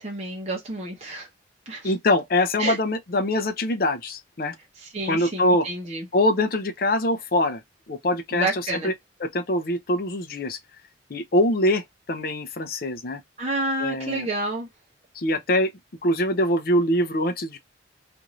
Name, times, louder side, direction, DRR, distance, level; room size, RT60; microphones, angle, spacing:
voice 1, 0.0-1.3 1.7-1.9 2.6-2.8 4.8-6.1 8.3-8.9 13.4-14.7, right 2 dB, 35° right, 0.7 m, -29 dB
voice 2, 1.8-4.6 5.1-5.7 6.1-7.6 7.9-8.9 9.2-10.6 11.1-13.2 13.8-14.3 15.2-15.7 16.0-17.6, left 1 dB, 50° left, 0.5 m, -23 dB
2.6 x 2.5 x 3.0 m
head